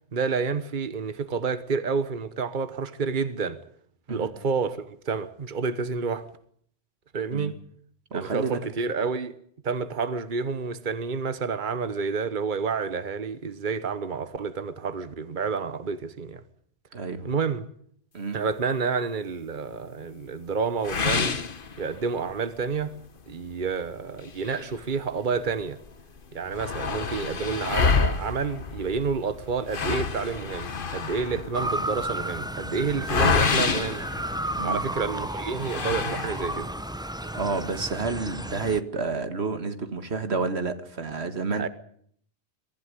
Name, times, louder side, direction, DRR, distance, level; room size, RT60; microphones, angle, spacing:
voice 1, 0.1-3.6 4.1-6.3 7.1-7.6 8.1-9.3 9.6-16.4 17.2-17.6 18.3-21.3 21.8-23.0 23.3-25.8 26.3-34.0 34.6-36.7 41.5-41.7, right 5 dB, 50° right, 1.3 m, -29 dB
voice 2, 8.1-8.7 16.9-17.3 18.1-18.4 34.6-34.8 37.2-41.7, right 4 dB, 90° right, 2.1 m, -30 dB
sound 1, 20.8-22.3 22.7-22.8 23.3-23.4 24.2-25.5 25.8-25.9 26.2-34.9 35.6-36.7, left 5 dB, 55° left, 1.4 m, -28 dB
Motor vehicle (road) / Siren, 31.5-38.8, right 1 dB, 5° right, 0.8 m, -33 dB
23.0 x 15.0 x 9.9 m
omnidirectional pair, 1.1 m